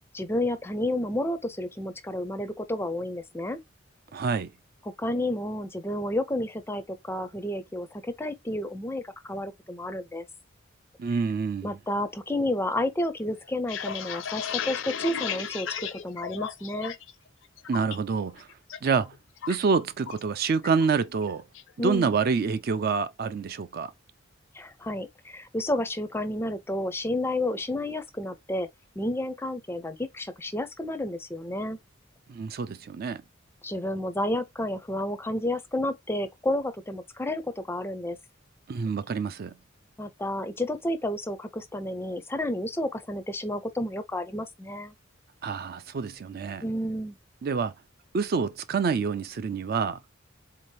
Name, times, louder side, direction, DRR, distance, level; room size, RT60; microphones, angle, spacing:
voice 1, 0.1-3.6 5.0-10.2 11.6-17.0 21.8-22.1 24.5-28.7 29.0-31.8 33.6-38.2 40.0-44.9 46.6-47.2, left 1 dB, 10° left, 0.4 m, -31 dB
voice 2, 4.1-4.5 11.0-11.7 17.7-18.5 18.8-19.1 19.5-21.4 21.8-23.9 32.3-33.2 38.7-39.5 45.4-46.6 47.4-47.7 48.1-50.0, right 5 dB, 50° right, 0.4 m, -27 dB
sound 1, 13.4-17.1 17.4-18.0 18.4-18.8 19.0-20.3 20.6-20.9 21.2-21.7, left 8 dB, 70° left, 0.5 m, -34 dB
3.9 x 2.8 x 3.2 m
head